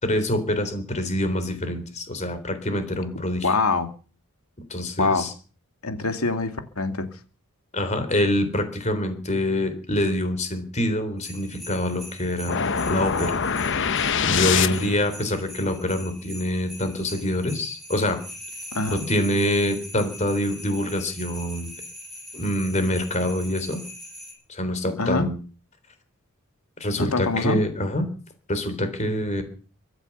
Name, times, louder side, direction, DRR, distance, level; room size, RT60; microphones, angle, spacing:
voice 1, 0.0-3.5 4.7-5.3 7.7-13.4 14.2-18.2 18.9-21.7 22.3-23.8 24.5-25.4 26.8-28.1 28.5-29.4, left 1 dB, 35° left, 3.7 m, -25 dB
voice 2, 3.4-3.9 5.0-5.2 5.8-7.1 18.7-19.0 25.0-25.3 27.0-27.6, left 3 dB, 90° left, 2.4 m, -24 dB
sound 1, 11.2-24.3, left 1 dB, ahead, 6.8 m, -42 dB
sound 2, 12.5-15.1, left 6 dB, 60° left, 0.9 m, -24 dB
24.0 x 8.1 x 7.2 m
head